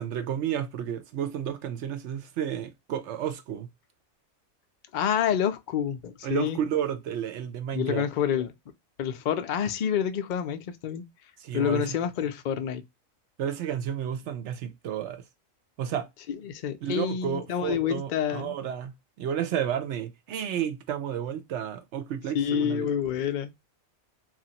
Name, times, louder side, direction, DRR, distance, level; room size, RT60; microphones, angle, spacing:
voice 1, 0.0-3.7 6.2-8.1 11.4-12.0 13.4-15.2 15.8-16.1 16.8-22.9, right 9 dB, 65° right, 0.8 m, -31 dB
voice 2, 4.9-6.6 7.7-8.5 9.0-11.0 11.5-12.8 16.3-18.5 22.3-23.5, left 8 dB, 80° left, 0.4 m, -28 dB
3.0 x 2.5 x 2.7 m
omnidirectional pair, 1.4 m